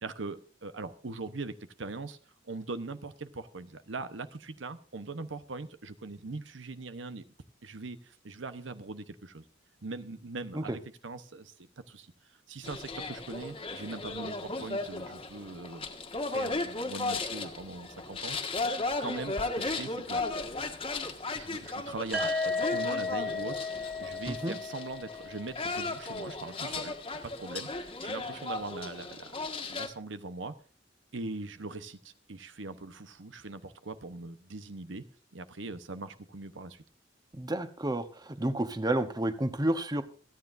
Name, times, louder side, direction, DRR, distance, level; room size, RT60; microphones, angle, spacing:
voice 1, 0.0-2.2 2.4-7.3 7.6-9.4 9.8-12.1 12.5-15.9 16.3-18.7 19.0-20.2 21.3-23.7 24.0-27.0 27.2-29.3 29.7-30.5 31.1-35.0 35.3-36.8, right 3 dB, 85° right, 11 dB, 1.0 m, -41 dB
sound 1, 12.6-29.9, left 3 dB, 30° left, 1.6 m, -36 dB
sound 2, 22.1-26.0, left 3 dB, 5° right, 1.5 m, -34 dB
voice 2, 37.4-40.0, right 1 dB, 20° right, 10 dB, 0.9 m, -30 dB
27.5 x 9.5 x 2.6 m, 0.39 s
head